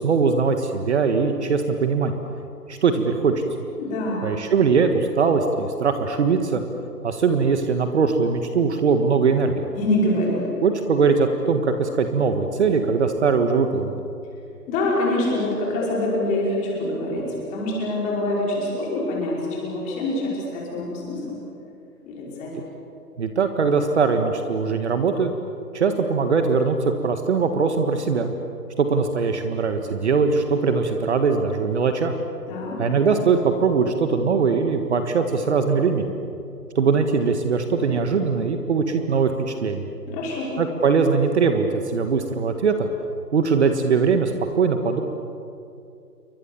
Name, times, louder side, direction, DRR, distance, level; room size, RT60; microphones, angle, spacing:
voice 1, 0.0-2.1 2.7-3.3 4.2-6.6 7.0-9.6 10.6-14.0 23.2-25.3 25.7-28.3 28.8-32.1 32.8-36.1 36.8-39.9 40.6-42.9 43.3-45.0, right 5 dB, 45° right, 6 dB, 1.7 m, -21 dB
voice 2, 3.8-4.3 9.8-10.4 14.7-21.4 22.0-22.5 32.5-32.8 40.1-40.5, left 1 dB, 15° left, -4 dB, 5.5 m, -25 dB
29.0 x 23.5 x 7.2 m, 2.6 s
hypercardioid pair, 160°, 48 cm